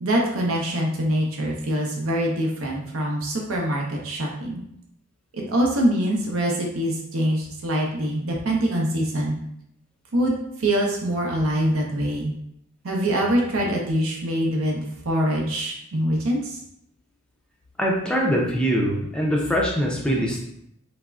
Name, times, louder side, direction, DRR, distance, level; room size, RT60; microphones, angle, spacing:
voice 1, 0.0-4.6 5.3-9.4 10.1-12.3 12.8-16.6, right 1 dB, 80° right, -1 dB, 0.6 m, -24 dB
voice 2, 17.8-20.4, equal, 5° left, -2 dB, 0.4 m, -23 dB
3.4 x 2.0 x 2.3 m, 0.76 s
head